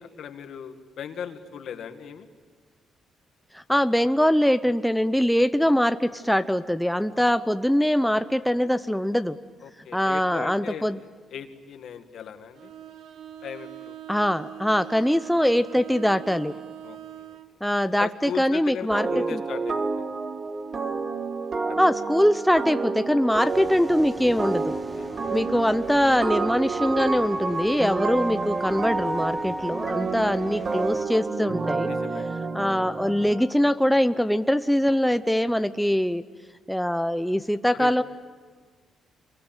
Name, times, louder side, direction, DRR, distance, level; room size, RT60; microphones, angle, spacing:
voice 1, 0.0-2.3 9.6-10.9 11.3-12.7 13.4-14.0 16.5-17.4 18.0-19.9 21.7-21.8 23.2-23.4 24.7-25.4 26.0-26.2 28.1-28.3 30.1-30.7 31.8-32.3 37.7-37.9, left 8 dB, 70° left, 7 dB, 2.1 m, -38 dB
voice 2, 3.5-9.4 9.9-11.0 14.1-16.5 17.6-19.4 21.8-24.8 25.3-31.9 32.5-36.2 36.7-38.0, equal, ahead, 11 dB, 0.7 m, -23 dB
Bowed string instrument, 12.6-17.5, right 11 dB, 80° right, 1.2 m, -42 dB
sound 1, 18.9-33.5, right 4 dB, 40° right, 1.7 m, -29 dB
sound 2, 23.4-31.0, right 1 dB, 15° right, 3.1 m, -45 dB
27.5 x 23.5 x 9.1 m, 1.5 s
cardioid pair, 90°, 0 cm